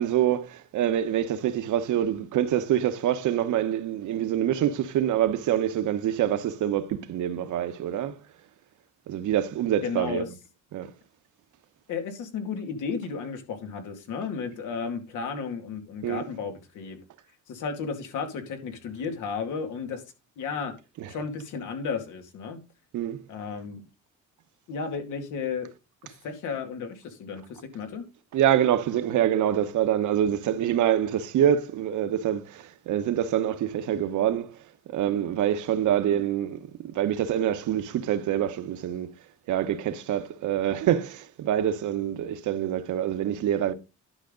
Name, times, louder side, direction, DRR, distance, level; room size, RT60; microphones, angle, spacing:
voice 1, 0.0-8.1 9.1-10.2 10.7-10.9 16.0-16.3 21.0-21.1 22.9-23.2 28.3-34.6 34.9-39.1 39.5-43.7, right 10 dB, 80° right, 1.1 m, -26 dB
voice 2, 9.8-10.3 11.9-17.0 17.5-20.0 20.4-20.7 21.1-22.6 23.3-23.8 24.7-25.7 26.0-28.0, left 5 dB, 90° left, 2.4 m, -33 dB
11.5 x 5.9 x 3.9 m
cardioid pair, 90°, 30 cm